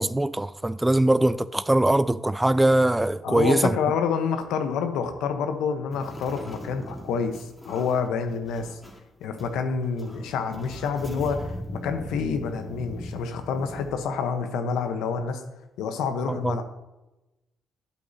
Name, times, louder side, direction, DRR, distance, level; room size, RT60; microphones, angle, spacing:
voice 1, 0.0-3.7 16.3-16.6, right 1 dB, 10° right, 0.3 m, -22 dB
voice 2, 3.2-8.8 9.2-15.4 15.8-16.6, left 5 dB, 90° left, 1.0 m, -28 dB
sound 1, 5.9-9.0 9.4-9.5 9.8-13.9, left 1 dB, 20° left, 1.7 m, -39 dB
12.0 x 8.5 x 2.8 m
cardioid pair, 90°, 0 cm